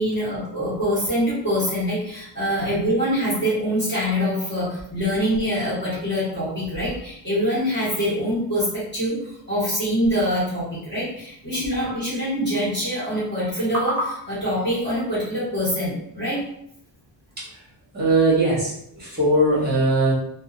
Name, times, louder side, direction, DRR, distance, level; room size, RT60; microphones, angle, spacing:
voice 1, 0.0-16.4, equal, 25° left, -11 dB, 1.1 m, -24 dB
voice 2, 17.9-20.1, right 2 dB, 20° right, -6 dB, 1.0 m, -20 dB
2.6 x 2.0 x 2.4 m, 0.71 s
wide cardioid pair, 165°, 44 cm